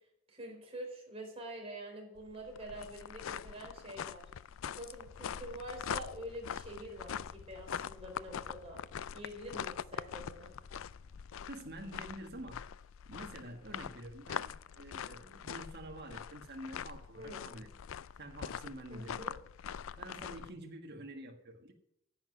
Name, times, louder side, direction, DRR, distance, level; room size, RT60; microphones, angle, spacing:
voice 1, 0.3-4.3 4.8-8.8 9.1-10.5 17.1-17.5 18.9-19.4, equal, 30° right, 4.4 m, -46 dB
sound 1, 2.2-20.5, left 8 dB, 75° left, 0.4 m, -43 dB
sound 2, 5.0-11.3, left 1 dB, 35° left, 5.4 m, -60 dB
voice 2, 11.4-12.6 13.0-17.7 18.2-19.3 20.0-21.7, right 1 dB, 55° right, 1.7 m, -47 dB
10.5 x 7.8 x 9.8 m
head